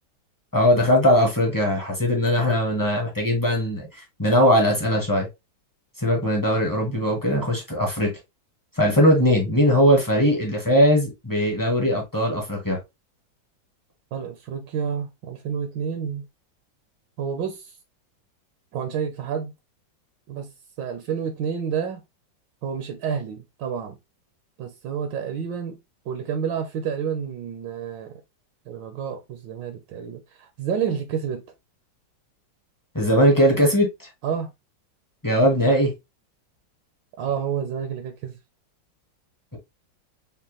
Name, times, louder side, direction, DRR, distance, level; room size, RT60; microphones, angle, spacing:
voice 1, 0.5-3.9 4.2-5.3 6.0-8.1 8.8-12.8 32.9-34.1 35.2-35.9, equal, 20° left, 0.6 m, -20 dB
voice 2, 14.1-16.2 17.2-17.7 18.7-19.5 20.3-20.5 20.8-22.0 22.6-24.0 24.6-25.8 26.1-28.1 28.7-31.4 34.2-34.5 37.2-38.3, right 7 dB, 75° right, 1.4 m, -29 dB
5.4 x 2.2 x 2.9 m
omnidirectional pair, 2.1 m